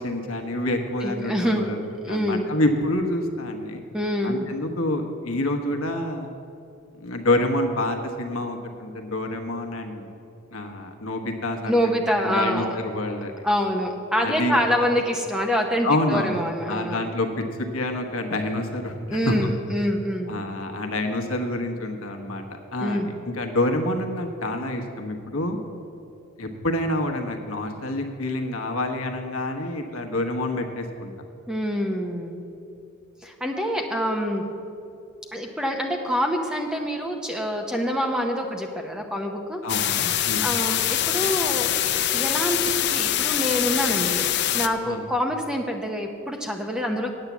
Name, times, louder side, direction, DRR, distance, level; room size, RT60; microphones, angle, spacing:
voice 1, 0.0-1.8 2.1-3.8 4.2-6.3 7.0-10.1 10.5-12.0 12.2-13.3 14.1-14.6 15.8-16.4 16.7-19.5 20.3-22.4 22.7-23.0 23.3-25.6 26.4-31.1 39.6-40.5 44.8-45.0, left 1 dB, 75° left, 3 dB, 1.1 m, -27 dB
voice 2, 1.0-2.4 3.9-4.5 11.7-12.8 13.4-17.0 19.1-20.3 22.8-23.1 31.5-32.4 33.2-34.4 35.3-39.6 40.4-47.1, equal, 5° right, 2 dB, 0.7 m, -26 dB
sound 1, 39.7-44.7, left 11 dB, 50° left, 0.4 m, -24 dB
8.9 x 8.1 x 7.2 m, 2.8 s
head